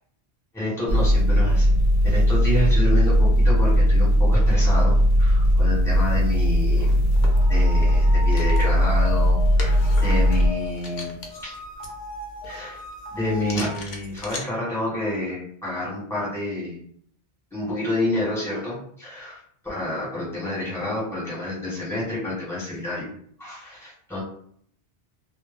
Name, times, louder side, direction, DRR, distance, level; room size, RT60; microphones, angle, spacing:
voice 1, 0.5-1.7 2.0-7.0 7.5-11.5 12.4-12.8 13.1-16.8 17.5-24.2, left 1 dB, 5° left, -6 dB, 0.9 m, -29 dB
sound 1, 0.9-10.5, equal, 75° right, 0.8 m, -18 dB
sound 2, 6.5-14.4, left 2 dB, 55° left, 0.6 m, -41 dB
sound 3, 7.3-13.8, left 2 dB, 85° left, 0.9 m, -37 dB
2.0 x 2.0 x 3.4 m, 0.63 s
omnidirectional pair, 1.1 m